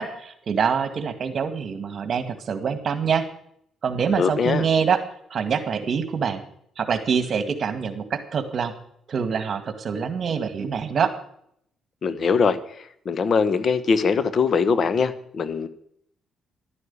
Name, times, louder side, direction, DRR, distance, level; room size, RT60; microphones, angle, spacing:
voice 1, 0.0-3.2 3.8-5.0 5.3-6.4 6.8-8.7 9.1-11.1, right 6 dB, 50° right, 10 dB, 1.9 m, -25 dB
voice 2, 4.2-4.6 12.0-12.6 13.0-15.7, left 5 dB, 50° left, 13 dB, 1.2 m, -21 dB
12.0 x 9.7 x 8.5 m, 0.69 s
cardioid pair, 90°, 0 cm